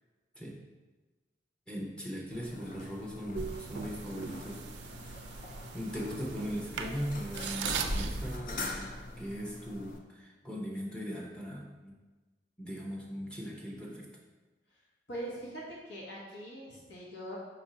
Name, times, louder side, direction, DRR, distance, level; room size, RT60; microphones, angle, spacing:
voice 1, 1.7-4.7 5.7-8.9 9.2-11.9 12.6-14.1, equal, 5° left, -3 dB, 0.6 m, -39 dB
sound 1, 2.3-10.0, left 1 dB, 50° left, 0.5 m, -41 dB
sound 2, 3.3-8.4, right 6 dB, 70° right, 0.3 m, -40 dB
voice 2, 15.1-17.4, right 1 dB, 75° left, -4 dB, 1.3 m, -42 dB
4.7 x 2.5 x 4.1 m, 1.2 s
head